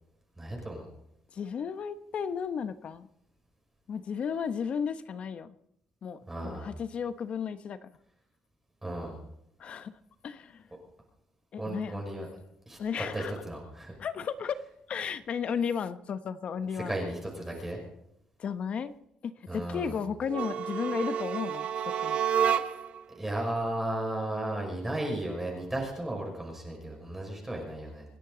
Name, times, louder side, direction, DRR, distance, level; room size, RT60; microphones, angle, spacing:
voice 1, 0.4-0.9 6.3-6.7 8.8-9.2 11.6-12.3 12.7-13.9 16.7-17.8 19.5-20.0 23.1-28.1, right 1 dB, 10° right, 0 dB, 5.6 m, -35 dB
voice 2, 1.3-3.1 3.9-5.5 6.0-7.9 9.6-10.7 11.5-12.0 12.8-13.3 14.0-14.6 14.9-17.0 18.4-18.9 19.2-22.2, left 7 dB, 50° left, 11 dB, 1.0 m, -34 dB
sound 1, 20.3-23.0, right 9 dB, 65° right, 1.1 m, -29 dB
28.0 x 10.0 x 4.0 m, 0.77 s
cardioid pair, 115°, 2 cm